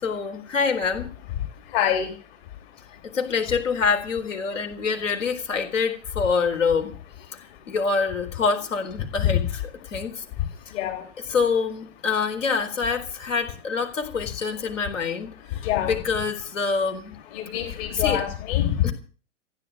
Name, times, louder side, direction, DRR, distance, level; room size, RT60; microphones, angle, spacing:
voice 1, 0.0-1.1 3.0-6.9 7.7-10.2 11.3-15.6 15.9-17.2 17.9-18.2 18.8-18.9, left 5 dB, 75° left, 5 dB, 4.3 m, -26 dB
voice 2, 1.7-2.1 9.2-9.4 10.7-11.0 15.6-16.0 17.3-18.8, left 11 dB, 50° left, 6 dB, 3.6 m, -24 dB
15.5 x 10.5 x 8.6 m, 0.38 s
hypercardioid pair, 110°, 38 cm